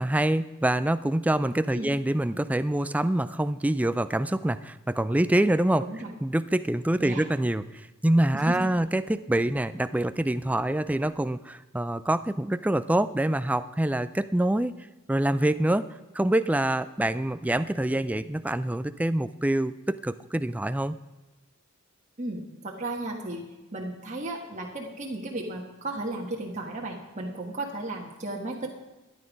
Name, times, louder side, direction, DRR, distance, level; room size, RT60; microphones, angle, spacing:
voice 1, 0.0-5.8 6.2-14.7 15.1-15.9 16.1-21.0, right 1 dB, 5° right, 13 dB, 0.3 m, -25 dB
voice 2, 5.8-6.1 7.0-7.2 8.3-8.5 22.2-23.4 23.7-28.7, right 2 dB, 30° right, -1 dB, 1.4 m, -34 dB
13.5 x 10.0 x 5.2 m, 1.1 s
head